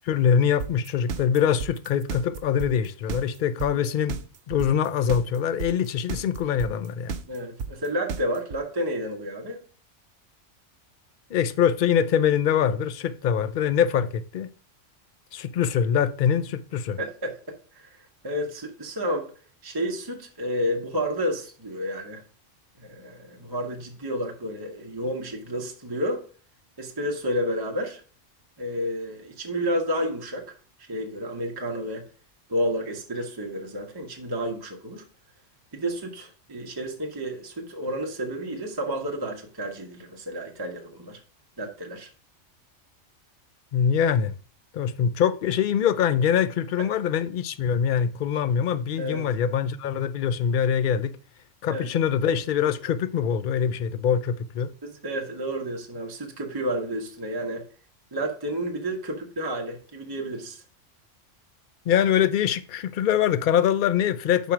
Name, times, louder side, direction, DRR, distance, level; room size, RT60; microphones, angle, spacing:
voice 1, 0.0-4.2 4.5-7.2 11.3-14.5 15.3-17.0 43.7-44.3 44.7-51.1 51.6-54.7 61.9-64.5, left 8 dB, 60° left, 0.5 m, -23 dB
sound 1, 0.6-8.6, right 5 dB, 65° right, 0.8 m, -32 dB
voice 2, 7.3-9.6 17.0-18.0 18.2-19.3 19.6-22.2 22.8-26.2 26.8-28.0 28.6-30.6 30.9-32.1 32.5-35.0 35.7-41.2 41.6-42.1 46.8-46.9 49.0-49.3 51.7-51.9 54.8-57.6 58.1-60.6, equal, 20° right, 0.9 m, -31 dB
5.1 x 4.6 x 5.9 m
omnidirectional pair, 1.3 m